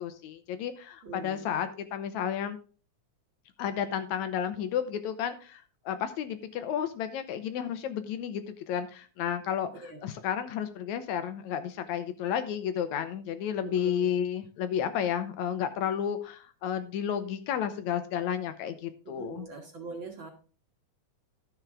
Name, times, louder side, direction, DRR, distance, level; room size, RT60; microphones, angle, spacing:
voice 1, 0.0-2.6 3.6-9.7 10.0-19.4, left 9 dB, 75° left, 10 dB, 2.0 m, -32 dB
voice 2, 1.0-1.5 9.8-10.0 13.6-14.1 19.0-20.3, right 4 dB, 45° right, 2 dB, 1.9 m, -42 dB
12.5 x 7.1 x 3.6 m, 0.39 s
omnidirectional pair, 3.5 m